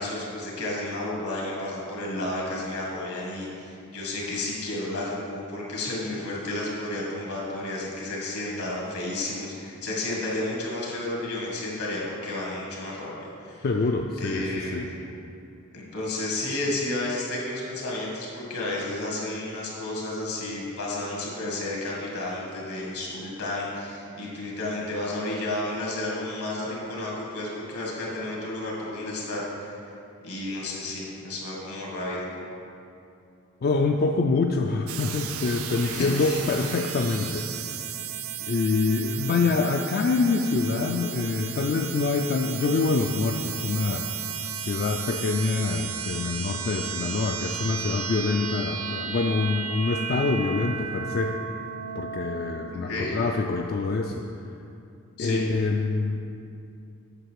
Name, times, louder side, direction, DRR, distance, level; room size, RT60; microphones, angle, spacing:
voice 1, 0.0-13.7 14.2-14.9 15.7-29.9 30.2-32.4 35.8-36.7 52.9-53.2 55.2-55.4, left 2 dB, 75° left, -4 dB, 2.1 m, -32 dB
voice 2, 13.6-14.9 33.6-37.8 38.5-44.0 44.6-51.4 52.0-54.2 55.2-56.2, left 3 dB, 45° left, 3 dB, 0.3 m, -25 dB
sound 1, 34.9-52.7, right 8 dB, 65° right, 0.5 m, -34 dB
7.9 x 6.5 x 4.6 m, 2.7 s
head